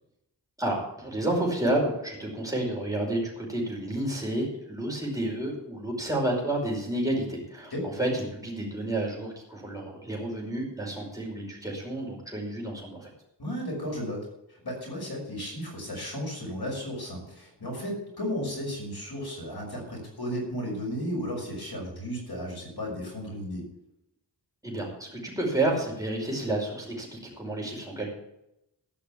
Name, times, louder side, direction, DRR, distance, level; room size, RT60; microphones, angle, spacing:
voice 1, 0.6-13.1 24.6-28.1, right 1 dB, 10° right, -3 dB, 5.2 m, -30 dB
voice 2, 13.4-14.3 14.6-23.7, equal, 60° left, -1 dB, 5.9 m, -34 dB
14.5 x 6.0 x 8.6 m, 0.85 s
wide cardioid pair, 70°, 44 cm